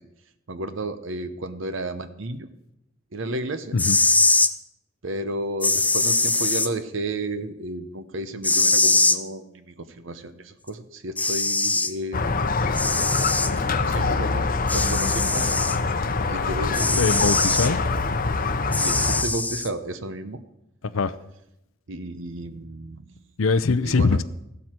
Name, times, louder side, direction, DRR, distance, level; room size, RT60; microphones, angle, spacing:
voice 1, 0.5-2.5 3.1-3.8 5.0-12.2 13.5-15.5 16.3-17.1 18.8-20.4 21.9-23.2 23.8-24.2, right 2 dB, 65° right, 10 dB, 0.9 m, -32 dB
sound 1, 3.6-4.5 5.6-6.7 8.4-9.2 10.7-10.8 11.2-11.9 12.7-13.5 14.7-15.8 16.7-17.7 18.7-19.7, left 3 dB, 10° left, 0.5 m, -22 dB
Squeak, 12.1-19.2, left 3 dB, 45° left, 0.7 m, -25 dB
voice 2, 17.0-17.8 20.9-21.1 23.4-24.2, left 4 dB, 80° left, 13 dB, 0.6 m, -22 dB
15.5 x 12.5 x 4.5 m, 0.82 s
head